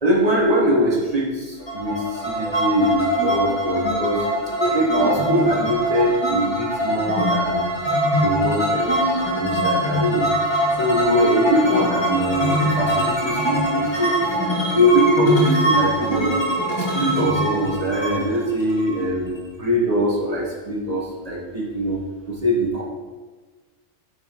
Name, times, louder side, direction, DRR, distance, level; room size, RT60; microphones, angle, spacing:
voice 1, 0.0-4.3 4.6-7.6 8.1-10.3 10.8-14.3 14.7-16.4 16.8-22.0 22.2-22.8, equal, 35° right, -3 dB, 1.4 m, -22 dB
sound 1, 1.7-19.4, equal, 25° left, 1.7 m, -22 dB
8.6 x 5.5 x 3.0 m, 1.3 s
omnidirectional pair, 1.2 m